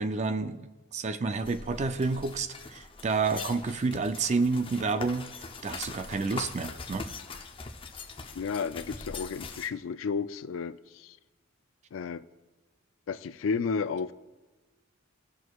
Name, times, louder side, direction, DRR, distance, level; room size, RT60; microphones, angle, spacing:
voice 1, 0.0-5.3 5.6-7.1, right 4 dB, 35° right, 0.4 m, -29 dB
sound 1, 1.4-9.7, left 4 dB, 25° left, 0.6 m, -42 dB
voice 2, 8.3-11.2 11.9-12.2 13.1-14.1, left 5 dB, 65° left, 0.3 m, -32 dB
18.0 x 6.2 x 2.3 m
head